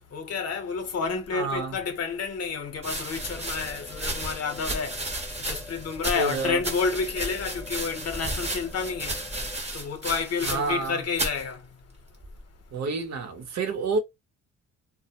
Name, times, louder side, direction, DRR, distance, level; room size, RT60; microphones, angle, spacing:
voice 1, 0.1-5.0 5.4-9.2 9.7-11.6, left 5 dB, 55° left, 0.9 m, -30 dB
voice 2, 1.3-1.8 6.1-6.6 10.4-11.0 12.7-14.0, right 4 dB, 60° right, 0.8 m, -28 dB
sound 1, 2.7-10.9 11.1-11.4 12.2-12.6, right 1 dB, 20° right, 1.0 m, -34 dB
sound 2, 3.2-9.6, left 2 dB, 5° left, 0.6 m, -44 dB
2.1 x 2.1 x 2.9 m
cardioid pair, 90°, 30 cm